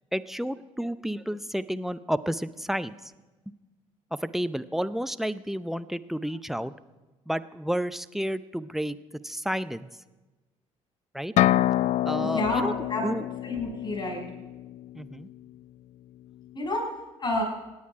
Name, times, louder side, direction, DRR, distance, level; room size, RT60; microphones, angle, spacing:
voice 1, 0.1-3.1 4.1-6.7 7.3-9.0 9.2-9.9 11.1-11.3 12.0-12.7 13.0-13.2 14.9-15.3, equal, ahead, 13 dB, 0.6 m, -31 dB
sound 1, 11.4-15.1, left 13 dB, 45° left, 0.4 m, -27 dB
voice 2, 12.2-13.0 13.4-14.2 16.5-16.8 17.2-17.4, left 2 dB, 25° left, -1 dB, 6.4 m, -29 dB
26.0 x 9.6 x 4.7 m, 1.2 s
figure-of-eight pair, 50°, 17 cm